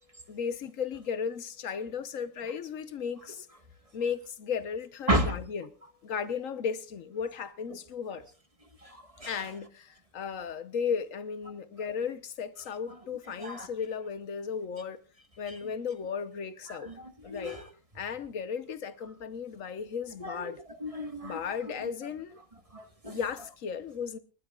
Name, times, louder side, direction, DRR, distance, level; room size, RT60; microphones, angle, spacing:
voice 1, 0.3-3.5 3.9-5.7 6.0-8.2 9.3-15.0 15.4-16.9 17.2-17.6 17.9-20.6 21.2-22.4 23.0-24.2, left 6 dB, 75° left, 1.3 m, -35 dB
voice 2, 8.8-9.4 13.4-13.7 16.7-16.9 17.3-17.6 20.2-20.5 20.8-21.4 22.7-23.2, right 1 dB, 25° right, 1.5 m, -32 dB
29.5 x 11.5 x 2.4 m
omnidirectional pair, 1.4 m